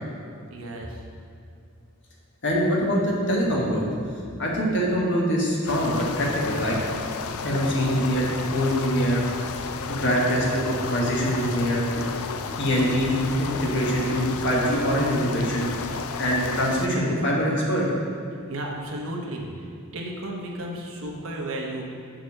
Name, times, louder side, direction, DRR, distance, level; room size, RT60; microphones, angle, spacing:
voice 1, 0.5-1.0 18.5-19.7 19.9-21.8, right 1 dB, 60° right, -1 dB, 1.0 m, -33 dB
voice 2, 2.4-3.9 4.4-6.8 7.4-8.3 8.5-9.2 9.9-12.1 12.6-15.7 16.2-17.9, equal, 55° left, -3 dB, 1.5 m, -24 dB
sound 1, 5.7-16.9, left 5 dB, 70° left, 0.4 m, -32 dB
6.3 x 5.0 x 6.5 m, 2.4 s
head